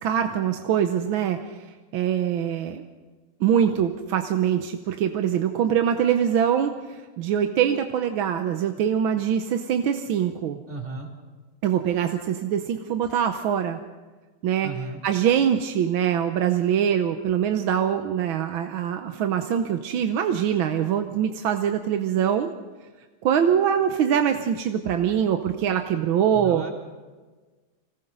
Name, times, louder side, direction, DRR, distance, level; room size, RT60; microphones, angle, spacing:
voice 1, 0.0-2.8 3.4-10.6 11.6-13.8 14.4-14.7 15.0-22.5 23.2-26.6, right 9 dB, 80° right, 6 dB, 1.7 m, -23 dB
voice 2, 10.7-11.1 14.6-15.0 26.3-26.7, right 3 dB, 30° right, -1 dB, 3.7 m, -34 dB
26.0 x 18.5 x 5.5 m, 1.3 s
omnidirectional pair, 2.2 m